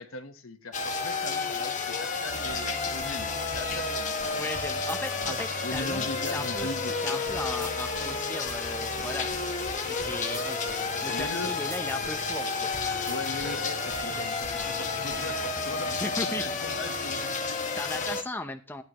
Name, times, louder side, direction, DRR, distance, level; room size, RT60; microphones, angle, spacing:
voice 1, 0.0-4.5 5.3-7.2 11.1-11.6 13.1-17.6, left 2 dB, 75° left, 8 dB, 1.2 m, -39 dB
sound 1, 0.7-18.2, left 4 dB, 35° left, 1.2 m, -31 dB
sound 2, 2.3-15.5, right 2 dB, 65° right, 2.4 m, -43 dB
voice 2, 4.4-6.7 7.0-9.3 9.8-10.6 11.0-12.7 16.0-16.5 17.8-18.8, left 2 dB, 10° left, 5 dB, 0.8 m, -36 dB
16.0 x 9.6 x 3.1 m, 0.34 s
head